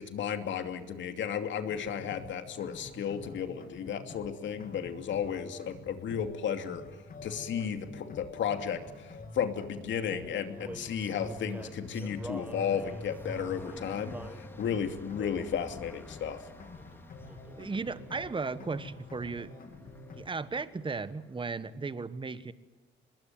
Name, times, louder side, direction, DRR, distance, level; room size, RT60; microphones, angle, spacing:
voice 1, 0.0-6.8 7.2-16.4, left 8 dB, 70° left, 7 dB, 2.7 m, -34 dB
sound 1, 1.6-20.2, left 3 dB, 45° left, 3.5 m, -47 dB
sound 2, 7.4-7.6 7.9-21.0, left 1 dB, 10° left, 2.4 m, -52 dB
Male singing, 10.0-14.4 15.2-15.6 16.2-16.5 16.8-17.7, right 1 dB, 10° right, 1.7 m, -47 dB
voice 2, 17.6-19.5 20.2-22.5, right 4 dB, 25° right, 14 dB, 1.4 m, -35 dB
24.5 x 21.0 x 9.3 m, 1.3 s
cardioid pair, 90°, 20 cm